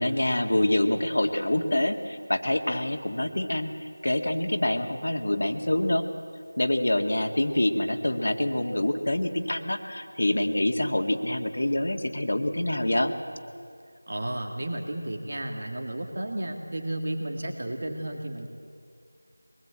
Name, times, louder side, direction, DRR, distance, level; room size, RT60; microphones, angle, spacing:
voice 1, 0.0-3.7 4.0-6.0 6.6-13.1, left 1 dB, 65° left, 5 dB, 2.0 m, -26 dB
voice 2, 14.1-18.5, right 1 dB, 50° right, 3 dB, 2.3 m, -33 dB
23.5 x 20.5 x 8.8 m, 2.3 s
figure-of-eight pair, 175°, 0 cm